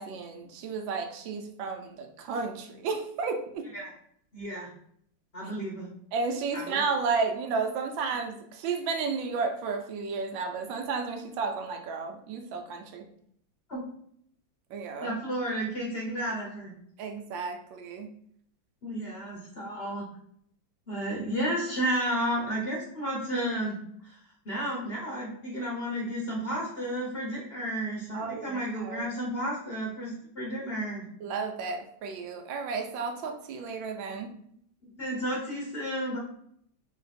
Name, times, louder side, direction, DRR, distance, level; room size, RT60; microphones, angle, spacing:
voice 1, 0.0-3.7 6.1-13.0 14.7-15.2 17.0-18.1 28.1-29.1 31.2-34.3, right 4 dB, 80° right, 5 dB, 1.3 m, -32 dB
voice 2, 4.3-4.7 5.3-5.9 6.5-6.8 13.7-13.8 15.0-16.7 18.8-20.0 20.9-23.8 24.0-24.2 24.4-31.0 35.0-36.2, right 1 dB, 45° left, -4 dB, 0.9 m, -32 dB
3.3 x 3.0 x 4.0 m, 0.68 s
omnidirectional pair, 2.1 m